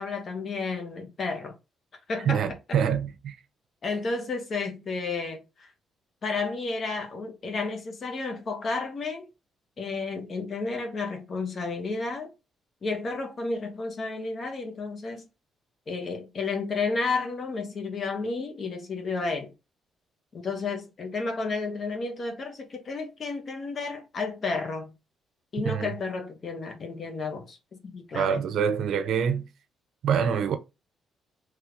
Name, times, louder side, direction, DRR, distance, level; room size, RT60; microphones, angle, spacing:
voice 1, 0.0-1.5 2.1-2.4 3.8-5.7 6.2-9.3 9.8-12.3 12.8-15.3 15.9-19.5 20.3-24.9 25.5-28.4, left 3 dB, 45° left, 1.0 m, -32 dB
voice 2, 2.3-3.4 25.6-25.9 28.1-29.5 30.0-30.6, right 7 dB, 70° right, 0.5 m, -25 dB
3.3 x 3.1 x 2.5 m
cardioid pair, 90°, 0 cm